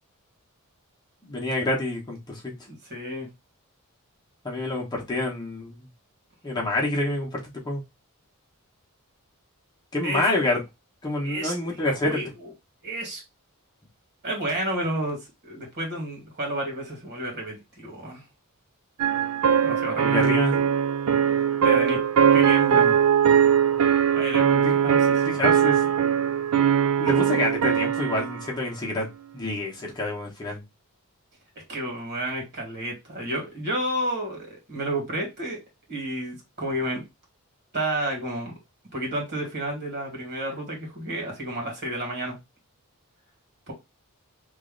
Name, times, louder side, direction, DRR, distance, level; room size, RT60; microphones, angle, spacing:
voice 1, 1.2-2.5 4.4-5.9 6.4-7.8 9.9-10.6 11.0-12.2 20.1-20.5 24.6-24.8 25.3-25.9 27.0-29.1 29.3-30.6, left 2 dB, 20° left, -2 dB, 1.0 m, -27 dB
voice 2, 2.7-3.3 10.0-10.2 11.2-12.5 12.8-13.2 14.2-18.2 19.6-20.4 21.6-22.0 22.3-23.1 24.1-25.2 31.6-35.6 35.9-37.0 37.7-38.5 38.9-42.4 43.7-43.8, right 1 dB, 50° right, 0 dB, 2.0 m, -31 dB
sound 1, 19.0-28.5, right 8 dB, 75° right, 0.4 m, -21 dB
3.1 x 2.7 x 3.8 m, 0.22 s
head